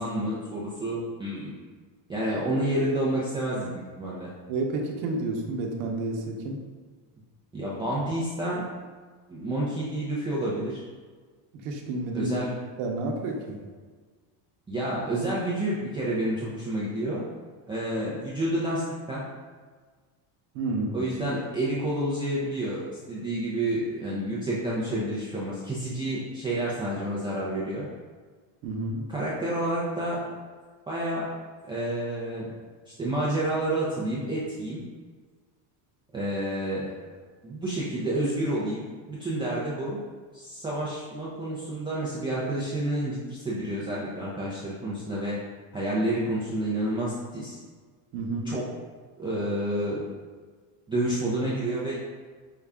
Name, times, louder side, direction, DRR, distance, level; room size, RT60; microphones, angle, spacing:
voice 1, 0.0-1.5 2.1-4.3 7.5-8.6 9.3-10.8 12.1-12.5 14.7-17.2 17.7-19.2 20.9-27.9 29.1-30.2 30.9-31.3 31.7-32.5 32.9-34.8 36.1-37.0 37.4-40.0 40.3-45.4 45.7-47.6 48.5-48.6 49.2-50.1 50.9-52.0, right 1 dB, 10° right, -8 dB, 0.4 m, -29 dB
voice 2, 4.5-6.6 11.6-12.4 12.8-13.6 20.5-21.0 28.6-29.1 48.1-48.5, right 2 dB, 90° right, 1 dB, 0.8 m, -30 dB
5.5 x 2.4 x 3.4 m, 1.5 s
cardioid pair, 140°, 50 cm